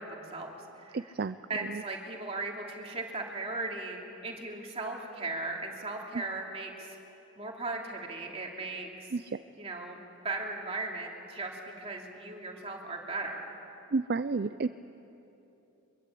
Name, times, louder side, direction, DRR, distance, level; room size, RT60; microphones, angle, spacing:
voice 1, 0.0-1.1 1.5-6.9 7.4-9.1 9.6-10.0 10.2-13.5, right 3 dB, 30° right, 0 dB, 3.0 m, -37 dB
voice 2, 0.9-1.4 9.1-9.2 13.9-14.7, right 4 dB, 50° right, 12 dB, 0.5 m, -30 dB
24.5 x 22.5 x 8.5 m, 3.0 s
head